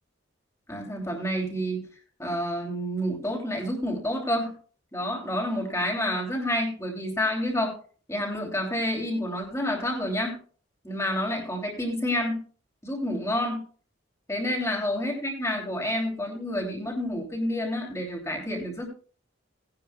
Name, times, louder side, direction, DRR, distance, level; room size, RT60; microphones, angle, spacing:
voice 1, 0.7-1.8 2.2-4.5 4.9-7.8 8.1-10.4 10.8-12.4 12.8-13.6 14.3-18.9, left 1 dB, 15° left, 0 dB, 3.0 m, -29 dB
18.0 x 10.5 x 2.3 m, 0.41 s
head